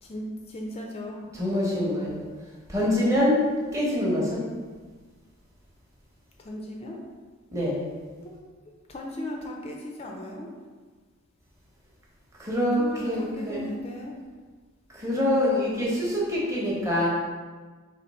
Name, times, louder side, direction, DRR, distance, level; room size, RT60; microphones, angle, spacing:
voice 1, 0.0-1.2 6.4-7.0 8.2-8.4 8.9-10.5 12.8-14.2, left 1 dB, 25° left, 0 dB, 0.4 m, -37 dB
voice 2, 1.4-2.2 2.7-3.4 3.7-4.5 7.5-7.8 12.4-13.6 14.9-17.1, left 1 dB, 15° right, -6 dB, 0.9 m, -25 dB
4.3 x 2.9 x 4.1 m, 1.4 s
head